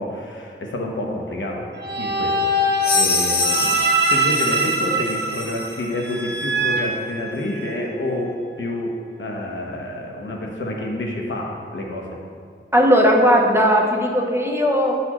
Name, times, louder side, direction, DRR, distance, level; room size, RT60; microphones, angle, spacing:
voice 1, 0.0-1.6 2.0-3.8 4.1-8.9 9.2-12.2, left 1 dB, 65° left, -1 dB, 0.9 m, -28 dB
sound 1, 1.8-7.8, right 2 dB, 55° right, 0.8 m, -23 dB
sound 2, 2.8-5.8, left 4 dB, 50° left, 0.6 m, -25 dB
voice 2, 12.7-14.9, equal, 10° right, 0 dB, 0.8 m, -17 dB
8.5 x 4.1 x 3.0 m, 2.2 s
wide cardioid pair, 70°, 21 cm